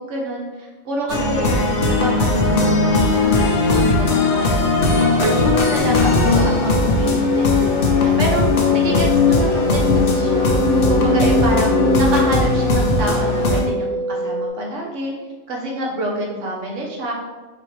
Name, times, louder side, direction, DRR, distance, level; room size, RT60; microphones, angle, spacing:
voice 1, 0.0-3.4 3.7-4.7 5.1-8.4 8.7-10.6 10.9-15.1 15.5-17.1, right 1 dB, 70° right, -1 dB, 1.2 m, -27 dB
sound 1, 1.1-13.6, left 3 dB, 55° left, 0.8 m, -17 dB
sound 2, 5.1-14.5, right 2 dB, 50° right, 0.4 m, -26 dB
4.6 x 3.4 x 3.1 m, 1.3 s
omnidirectional pair, 1.4 m